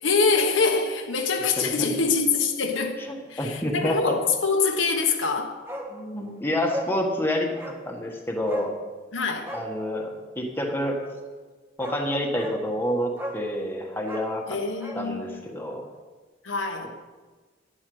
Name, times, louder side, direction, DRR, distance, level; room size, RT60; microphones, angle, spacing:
voice 1, 0.0-3.0 3.3-5.5 9.1-9.5 14.5-15.4 16.4-16.9, left 4 dB, 75° left, 1.2 m, -24 dB
voice 2, 3.0-4.1 5.9-8.7 9.5-11.0 11.8-14.6 14.9-15.9, equal, 10° left, 1.5 m, -28 dB
Bark, 5.7-5.9 6.2-6.3 6.7-6.9 7.6-7.8 8.5-8.7 9.4-9.7 11.3-11.4 11.8-12.0 12.4-12.6 13.2-13.5 14.0-15.0 15.3-15.4, equal, 10° right, 1.3 m, -36 dB
11.0 x 10.5 x 5.5 m
head